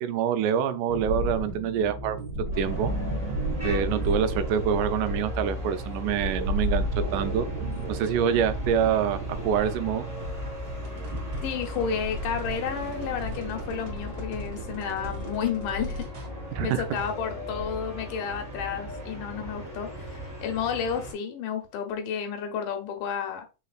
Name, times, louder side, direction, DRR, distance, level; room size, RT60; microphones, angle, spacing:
voice 1, 0.0-2.2 2.6-2.9 3.6-6.9 7.1-7.5 7.9-10.1 16.5-16.9, right 8 dB, 85° right, 2.1 m, -26 dB
sound 1, 0.9-17.9, equal, 40° right, 1.6 m, -34 dB
sound 2, 2.5-21.1, equal, 10° right, 2.5 m, -38 dB
voice 2, 11.4-16.0 16.6-23.5, left 7 dB, 90° left, 2.6 m, -31 dB
4.9 x 4.1 x 2.4 m
omnidirectional pair, 3.6 m